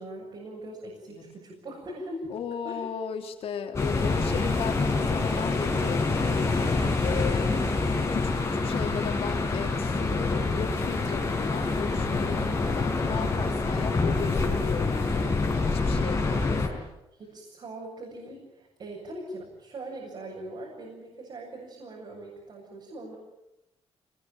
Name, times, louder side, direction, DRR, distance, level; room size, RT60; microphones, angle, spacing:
voice 1, 0.0-2.3 2.6-2.9 6.7-7.6 16.2-16.4 17.1-23.2, right 1 dB, 50° right, -2 dB, 7.4 m, -41 dB
voice 2, 2.3-7.7 8.0-16.8, left 7 dB, 75° left, 4 dB, 3.6 m, -36 dB
sound 1, 3.7-16.7, left 3 dB, 25° left, 5.1 m, -26 dB
26.0 x 21.0 x 9.2 m, 0.90 s
wide cardioid pair, 145°, 10 cm